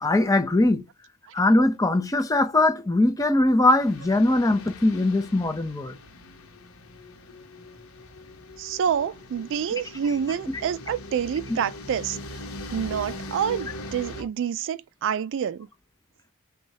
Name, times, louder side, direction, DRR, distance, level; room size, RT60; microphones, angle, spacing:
voice 1, 0.0-0.8 1.3-6.0, left 2 dB, 15° left, 0.6 m, -21 dB
sound 1, 3.8-14.2, left 1 dB, 65° left, 1.0 m, -41 dB
voice 2, 8.6-12.2 12.7-15.7, right 8 dB, 60° right, 0.3 m, -27 dB
6.1 x 2.3 x 2.8 m
head